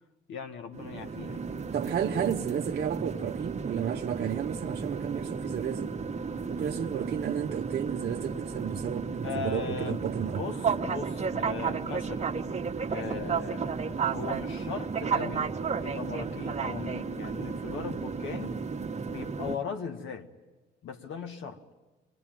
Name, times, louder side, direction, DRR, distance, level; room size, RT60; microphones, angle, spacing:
voice 1, 0.3-1.5 9.2-10.0 10.3-12.3 12.9-15.5 15.8-18.6 19.0-20.3 20.8-21.6, left 6 dB, 80° left, 1.7 m, -38 dB
sound 1, 0.7-19.6, right 5 dB, 35° right, 1.4 m, -33 dB
voice 2, 1.7-5.9 6.5-10.4, right 8 dB, 55° right, 0.8 m, -32 dB
24.5 x 19.5 x 9.1 m
cardioid pair, 90°, 20 cm